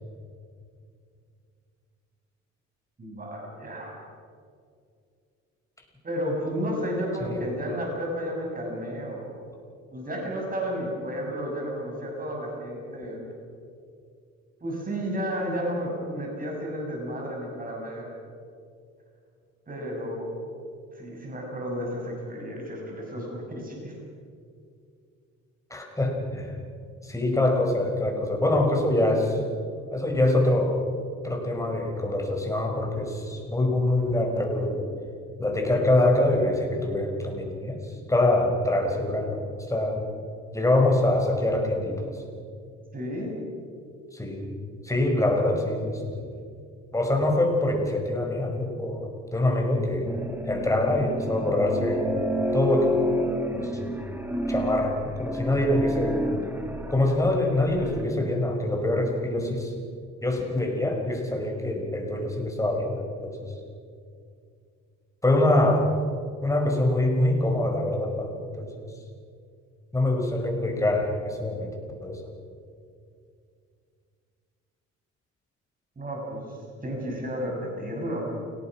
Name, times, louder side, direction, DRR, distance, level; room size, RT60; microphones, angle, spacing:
voice 1, 3.0-3.9 6.0-9.5 9.9-13.2 14.6-18.1 19.7-20.4 20.9-24.0 42.9-43.4 76.0-78.4, equal, 30° right, -1 dB, 6.6 m, -32 dB
voice 2, 25.7-26.6 27.0-29.4 29.9-30.8 31.2-34.9 35.4-40.0 40.5-42.2 44.1-44.5 44.8-46.3 46.9-50.1 50.4-52.1 52.5-52.9 53.5-54.0 54.5-56.2 56.9-59.7 60.2-63.5 65.2-65.9 66.4-68.7 69.9-71.7 72.0-72.2, left 1 dB, 10° left, 1 dB, 5.3 m, -25 dB
sound 1, 50.0-58.0, equal, 5° right, 2.4 m, -30 dB
29.0 x 18.0 x 6.1 m, 2.3 s
cardioid pair, 90°, 29 cm